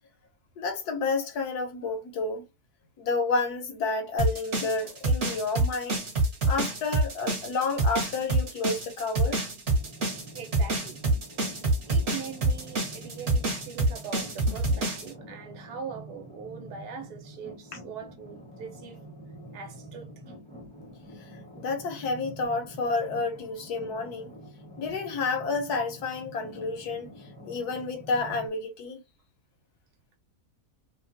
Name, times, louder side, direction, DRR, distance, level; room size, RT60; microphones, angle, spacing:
voice 1, 0.6-2.4 3.0-6.0 6.5-9.4 21.5-24.3 24.8-27.1 27.4-29.0, left 3 dB, 80° left, 1.4 m, -30 dB
sound 1, 4.2-15.1, right 2 dB, 45° right, 1.3 m, -26 dB
sound 2, 9.7-28.5, right 1 dB, 10° left, 0.4 m, -46 dB
voice 2, 10.3-11.0 11.9-19.0 19.5-20.1, right 6 dB, 80° right, 1.3 m, -41 dB
3.3 x 2.2 x 2.5 m
omnidirectional pair, 1.7 m